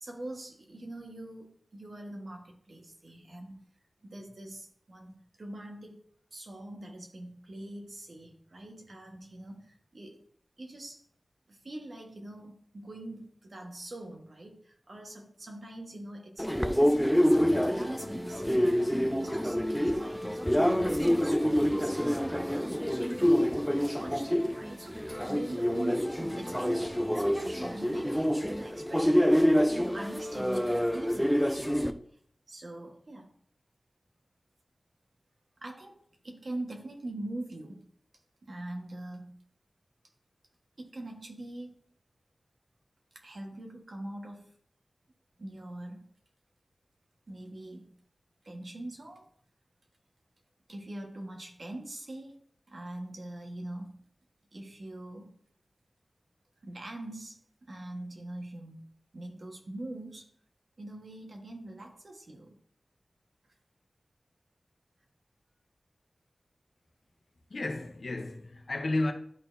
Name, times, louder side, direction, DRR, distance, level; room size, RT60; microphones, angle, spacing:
voice 1, 0.0-3.6 4.0-6.0 6.3-10.2 10.6-11.0 11.5-23.5 23.9-32.0 32.5-33.3 35.6-36.0 36.2-37.9 38.4-39.3 40.8-41.8 43.1-44.5 45.4-46.0 47.3-47.9 48.4-49.3 50.7-54.0 54.5-55.3 56.6-57.4 57.7-58.8 59.1-60.3 60.8-62.5, right 1 dB, 65° right, 1.4 m, -43 dB
sound 1, 16.4-31.9, equal, 5° left, 0.5 m, -27 dB
voice 2, 67.5-69.1, left 2 dB, 70° left, 0.9 m, -32 dB
11.5 x 4.1 x 2.7 m
wide cardioid pair, 60°, 0 cm